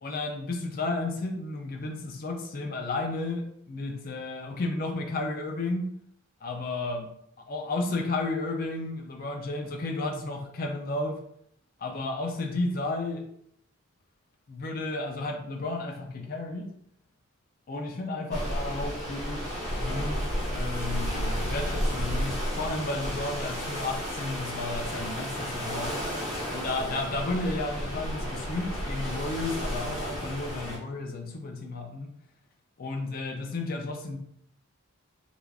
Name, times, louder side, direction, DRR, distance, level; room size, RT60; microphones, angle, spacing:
voice 1, 0.0-5.9 6.4-7.1 7.4-11.2 11.8-13.2 14.5-16.7 17.7-19.4 19.8-26.0 26.5-32.1 32.8-34.2, left 2 dB, 40° left, 2 dB, 0.4 m, -33 dB
sound 1, 18.3-30.8, equal, 15° right, 1.0 m, -32 dB
3.3 x 2.3 x 2.3 m, 0.70 s
head